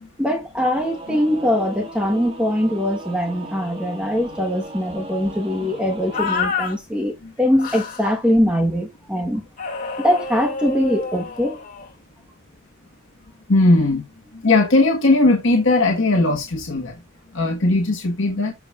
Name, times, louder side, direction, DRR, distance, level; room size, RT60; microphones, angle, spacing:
voice 1, 0.2-9.4 10.0-11.6, equal, 5° right, 1.2 m, -22 dB
Singing / Musical instrument, 0.7-6.4, right 2 dB, 25° right, 2.1 m, -38 dB
sound 1, 6.1-6.7 7.6-8.1 9.6-11.9, left 4 dB, 40° left, 2.4 m, -28 dB
voice 2, 13.5-14.0 14.3-17.0 17.3-18.5, left 2 dB, 60° left, 1.4 m, -18 dB
14.5 x 4.9 x 2.4 m
head